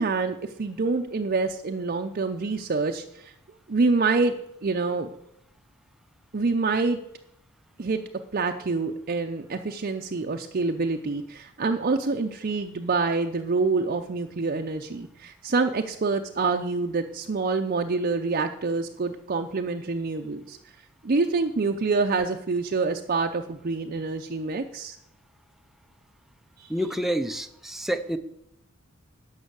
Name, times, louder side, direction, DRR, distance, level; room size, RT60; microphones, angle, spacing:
voice 1, 0.0-3.3 3.7-5.1 6.3-7.0 7.8-20.6 21.0-25.0 26.6-26.7, right 3 dB, 45° right, 4 dB, 0.6 m, -26 dB
voice 2, 26.7-28.2, equal, ahead, 6 dB, 0.5 m, -28 dB
11.5 x 5.6 x 8.0 m, 0.76 s
head